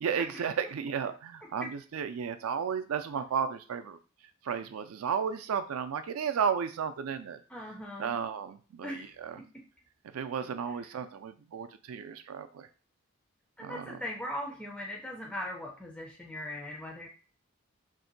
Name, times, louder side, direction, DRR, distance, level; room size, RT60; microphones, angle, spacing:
voice 1, 0.0-4.0 4.4-7.4 8.0-9.4 10.1-12.7 13.6-14.0, right 7 dB, 80° right, 10 dB, 0.4 m, -33 dB
voice 2, 7.5-8.1 8.8-9.1 9.4-9.6 13.6-17.1, left 1 dB, 5° left, 0 dB, 0.3 m, -39 dB
2.6 x 2.1 x 3.8 m, 0.36 s
head